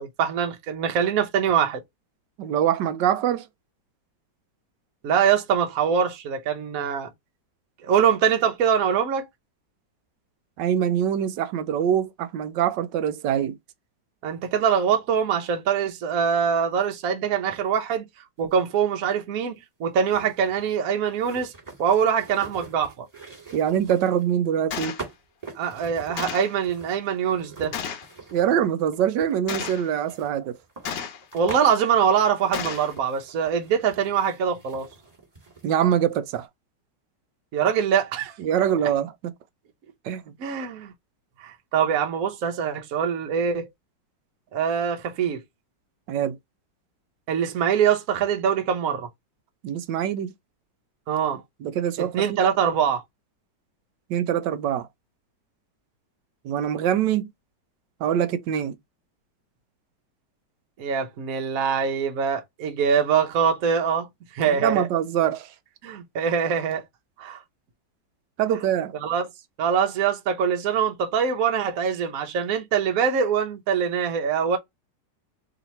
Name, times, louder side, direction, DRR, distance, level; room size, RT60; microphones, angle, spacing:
voice 1, 0.0-1.8 5.0-7.1 7.8-9.2 14.2-18.0 18.4-21.5 21.8-23.0 25.6-27.7 31.3-34.9 37.5-38.3 40.4-40.9 41.4-43.7 44.5-45.4 47.3-49.1 51.1-51.4 52.0-53.0 60.8-64.1 64.3-64.9 65.8-66.8 67.2-67.4 69.0-69.2 69.6-74.6, right 7 dB, 60° right, 1.1 m, -23 dB
voice 2, 2.4-3.5 10.6-13.6 23.5-25.0 28.3-30.6 35.6-36.5 38.4-39.3 40.0-40.3 46.1-46.4 49.6-50.3 51.6-52.4 54.1-54.9 56.4-57.3 58.0-58.8 64.5-65.5 68.4-68.9, right 9 dB, 80° right, 1.2 m, -24 dB
sound 1, 18.6-18.7 20.1-24.3 25.0-31.7 32.3-36.1 36.4-36.5, right 4 dB, 20° right, 1.7 m, -44 dB
Gunshot gunfire, 24.7-25.0 26.2-26.6 27.7-28.1 29.5-29.9 30.8-31.3 32.5-32.9, left 7 dB, 75° left, 1.4 m, -32 dB
3.2 x 2.9 x 4.0 m
omnidirectional pair, 1.9 m